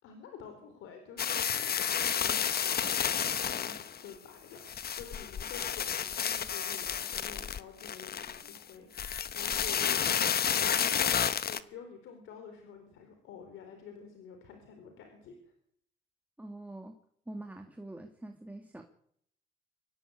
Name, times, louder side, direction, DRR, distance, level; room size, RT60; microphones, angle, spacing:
voice 1, 0.0-15.4, left 7 dB, 90° left, 6 dB, 4.1 m, -49 dB
sound 1, 1.2-4.0 4.6-8.6 8.9-11.6, left 8 dB, 50° left, 1.3 m, -31 dB
voice 2, 16.4-17.0 17.3-18.8, right 1 dB, 10° right, 4 dB, 2.3 m, -44 dB
24.5 x 16.5 x 8.7 m, 0.71 s
cardioid pair, 90°, 20 cm